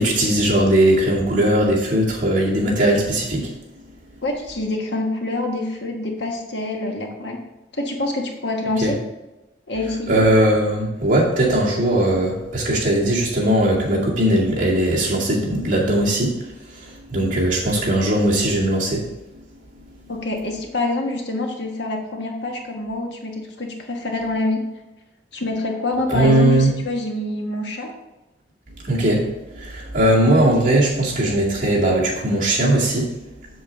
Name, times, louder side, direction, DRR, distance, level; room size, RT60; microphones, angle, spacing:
voice 1, 0.0-3.5 8.8-8.9 10.1-19.1 26.1-26.7 28.8-33.2, right 1 dB, 45° right, -5 dB, 2.1 m, -19 dB
voice 2, 4.2-7.4 7.7-9.0 9.7-10.2 20.1-24.6 25.3-27.9, left 2 dB, 70° left, 2 dB, 1.3 m, -26 dB
7.4 x 7.2 x 3.6 m, 1.0 s
head